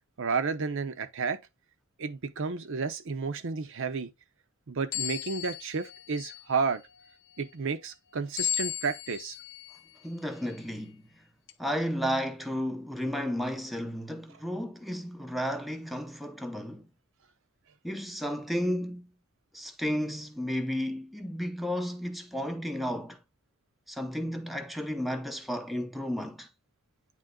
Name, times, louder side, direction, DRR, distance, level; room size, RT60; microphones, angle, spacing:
voice 1, 0.2-1.4 2.0-4.1 4.7-6.8 7.4-9.4, right 5 dB, 60° right, 0.6 m, -31 dB
sound 1, 4.9-6.6 8.4-9.8 10.4-10.6 11.5-11.6, left 11 dB, 55° left, 0.7 m, -35 dB
voice 2, 10.0-11.0 11.6-16.9 17.8-19.1 19.5-23.2 23.9-26.5, equal, ahead, 0.6 m, -33 dB
9.0 x 3.2 x 3.7 m
head